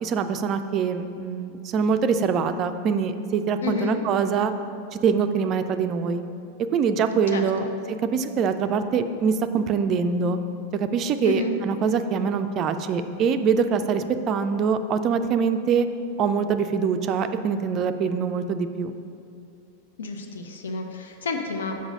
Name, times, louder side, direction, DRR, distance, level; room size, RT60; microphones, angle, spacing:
voice 1, 0.0-4.5 4.9-6.2 6.7-7.6 8.1-10.4 10.7-15.9 16.2-18.9, right 6 dB, 35° right, 9 dB, 0.3 m, -24 dB
voice 2, 3.6-4.0 7.3-7.7 11.2-11.6 20.0-21.8, left 4 dB, 65° left, 4 dB, 0.5 m, -30 dB
6.0 x 5.2 x 5.1 m, 2.6 s
figure-of-eight pair, 90°, 0 cm